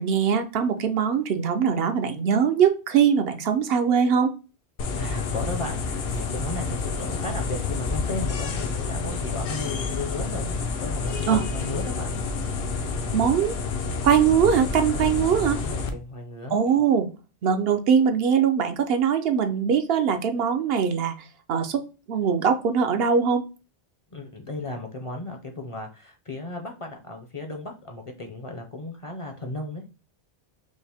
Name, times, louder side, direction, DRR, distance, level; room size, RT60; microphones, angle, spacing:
voice 1, 0.0-4.3 11.3-11.4 13.1-13.6 14.0-15.6 16.5-17.1 17.4-21.1 21.5-23.4, right 7 dB, 70° right, 7 dB, 0.8 m, -22 dB
sound 1, 4.8-15.9, left 4 dB, 70° left, 0.9 m, -29 dB
voice 2, 5.0-5.8 6.1-12.1 15.6-16.6 24.1-29.8, left 2 dB, 35° left, 3 dB, 0.6 m, -35 dB
5.3 x 2.0 x 3.4 m, 0.32 s
omnidirectional pair, 1.1 m